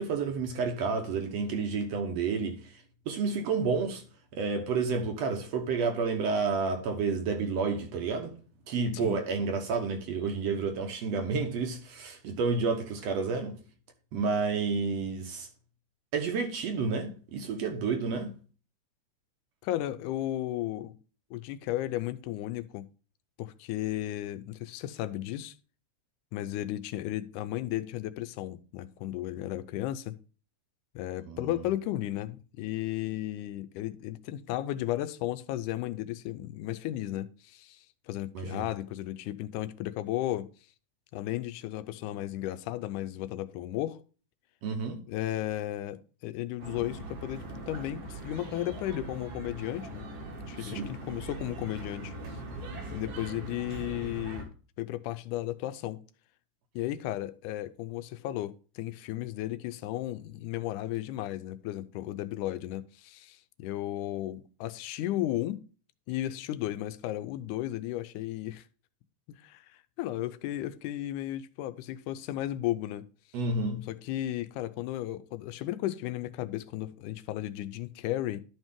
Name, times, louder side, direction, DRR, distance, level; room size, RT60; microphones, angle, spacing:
voice 1, 0.0-2.6 3.1-4.0 4.3-8.3 8.7-13.6 14.1-15.5 16.1-18.3 31.3-31.5 38.4-38.6 44.6-45.0 50.6-50.9 73.3-73.9, right 4 dB, 65° right, 2.0 m, -30 dB
voice 2, 19.6-21.0 21.3-22.9 23.4-25.5 26.3-30.2 31.0-40.5 41.1-44.0 45.1-50.1 50.5-52.1 52.9-54.5 54.8-56.0 56.8-65.6 66.1-68.6 69.3-69.7 70.0-73.1 73.9-78.4, left 14 dB, 85° left, 2.1 m, -34 dB
sound 1, 46.6-54.4, right 2 dB, 90° right, 3.5 m, -41 dB
11.5 x 5.3 x 3.6 m
omnidirectional pair, 3.5 m